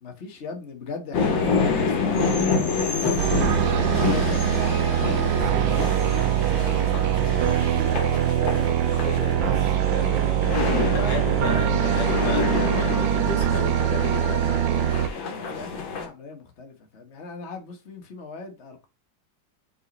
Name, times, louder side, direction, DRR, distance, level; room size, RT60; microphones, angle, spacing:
voice 1, 0.0-3.2 3.6-9.8 10.2-11.2 15.1-18.9, left 4 dB, 40° left, 1.5 m, -38 dB
sound 1, 1.1-16.1, left 4 dB, 85° left, 2.2 m, -28 dB
sound 2, 3.2-15.1, right 11 dB, 85° right, 1.3 m, -23 dB
voice 2, 9.9-10.3 10.7-14.4, left 5 dB, 65° left, 1.6 m, -33 dB
5.6 x 4.8 x 5.3 m
omnidirectional pair, 2.0 m